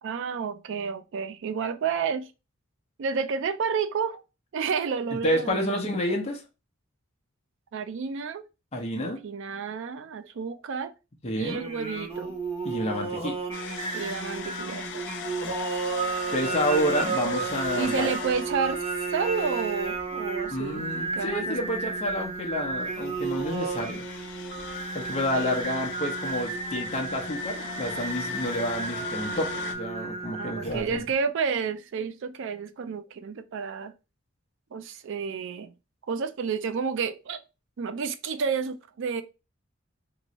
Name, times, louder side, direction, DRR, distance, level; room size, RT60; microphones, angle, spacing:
voice 1, 0.0-2.3 3.0-4.2 4.5-5.8 7.7-8.4 9.0-10.9 11.3-12.4 13.9-15.0 17.8-18.8 19.1-20.9 21.1-21.7 25.1-25.5 30.3-33.9 34.7-35.7 36.1-37.4 37.8-39.2, right 5 dB, 65° right, 0.4 m, -30 dB
voice 2, 5.2-6.4 8.7-9.2 11.2-11.6 12.6-13.4 16.3-18.1 20.5-24.1 24.9-31.0, left 1 dB, 30° left, 0.7 m, -29 dB
Singing, 11.4-31.0, right 4 dB, 30° right, 0.9 m, -32 dB
sound 1, 13.5-29.7, left 6 dB, 60° left, 0.4 m, -40 dB
3.0 x 2.6 x 2.9 m
head